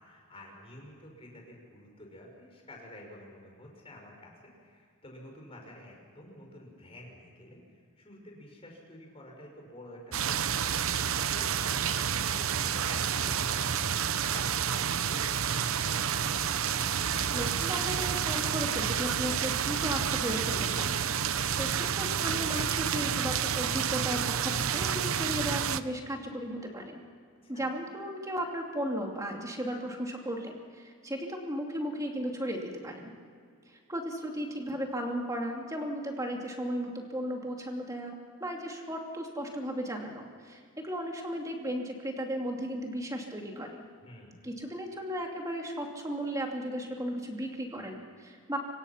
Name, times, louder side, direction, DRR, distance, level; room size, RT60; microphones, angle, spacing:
voice 1, 0.0-4.3 4.6-10.5 10.7-16.3 27.4-27.7 44.0-44.4, left 1 dB, 25° left, 0 dB, 5.8 m, -50 dB
sound 1, 10.1-25.8, right 8 dB, 70° right, 0.8 m, -29 dB
voice 2, 17.3-27.0 27.5-33.1 33.7-43.8 44.4-48.6, equal, 15° right, 1 dB, 2.6 m, -35 dB
26.0 x 23.5 x 5.8 m, 2.2 s
head